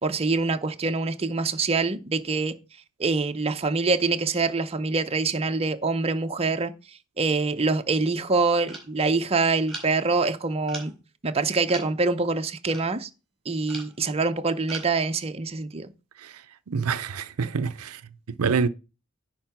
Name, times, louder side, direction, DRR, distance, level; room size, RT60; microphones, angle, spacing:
voice 1, 0.0-2.5 3.0-6.7 7.2-10.9 11.2-13.1 13.5-15.9, right 3 dB, 30° right, 0.7 m, -25 dB
sound 1, 8.7-8.8 9.7-10.0 10.7-11.0 11.5-11.9 12.7-13.0 13.7-14.0 14.7-14.9, right 2 dB, ahead, 4.0 m, -40 dB
voice 2, 16.7-18.0 18.4-18.7, right 5 dB, 90° right, 0.6 m, -26 dB
10.5 x 4.4 x 5.9 m
head